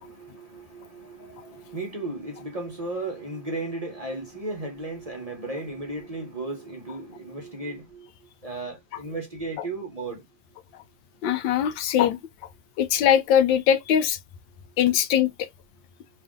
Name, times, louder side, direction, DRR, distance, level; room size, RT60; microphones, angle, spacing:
voice 1, 0.0-8.1 8.4-10.2, right 2 dB, 30° right, 0.6 m, -35 dB
voice 2, 11.2-12.2 12.8-14.2 14.8-15.5, left 9 dB, 80° left, 1.3 m, -21 dB
3.3 x 2.5 x 3.6 m
omnidirectional pair, 2.1 m